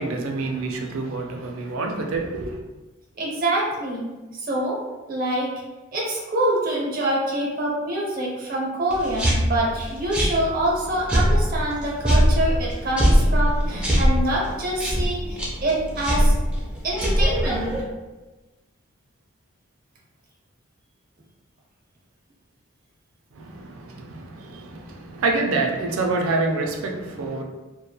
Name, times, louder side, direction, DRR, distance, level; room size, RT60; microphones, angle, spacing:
voice 1, 0.0-2.6 23.3-27.4, right 3 dB, 80° right, 3 dB, 0.4 m, -27 dB
voice 2, 3.2-4.8 5.1-5.5 5.9-16.3 16.8-17.8, right 1 dB, 40° right, -3 dB, 0.6 m, -25 dB
sound 1, 8.9-17.8, equal, 5° right, 0.3 m, -22 dB
2.8 x 2.2 x 2.2 m, 1.1 s
head